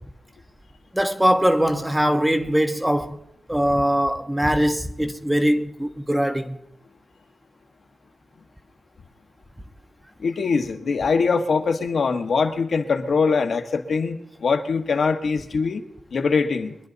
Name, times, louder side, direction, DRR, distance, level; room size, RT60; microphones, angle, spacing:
voice 1, 0.9-3.2 3.5-6.6, equal, 10° right, 0.8 m, -21 dB
voice 2, 10.2-15.8 16.1-16.8, left 5 dB, 65° left, 1.2 m, -22 dB
23.5 x 10.5 x 4.0 m
wide cardioid pair, 115°, 0 cm